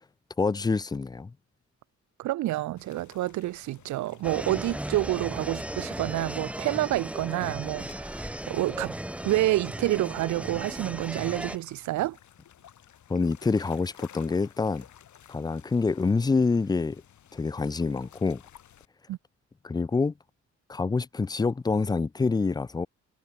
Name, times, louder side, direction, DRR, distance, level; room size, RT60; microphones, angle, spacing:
voice 1, 0.4-1.3 13.1-14.9 15.3-17.0 17.3-18.4 19.6-20.1 20.7-22.9, left 4 dB, 15° left, 0.4 m, -26 dB
voice 2, 2.2-8.9 9.2-12.2 19.1-19.2, right 16 dB, 75° right, 0.4 m, -28 dB
sound 1, 2.8-18.9, left 10 dB, 75° left, 5.5 m, -55 dB
sound 2, 4.2-11.6, right 1 dB, 5° right, 1.7 m, -36 dB
wide cardioid pair, 155°, 30 cm